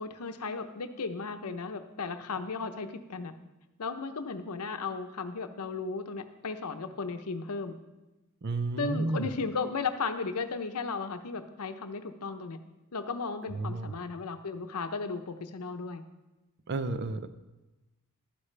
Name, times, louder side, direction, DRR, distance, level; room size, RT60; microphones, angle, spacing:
voice 1, 0.0-3.3 3.8-7.7 8.8-12.6 12.9-16.0, left 4 dB, 90° left, 8 dB, 0.8 m, -35 dB
voice 2, 8.4-9.3 13.5-14.0 16.7-17.3, right 3 dB, 50° right, 11 dB, 0.5 m, -32 dB
12.0 x 9.7 x 3.3 m, 1.1 s
head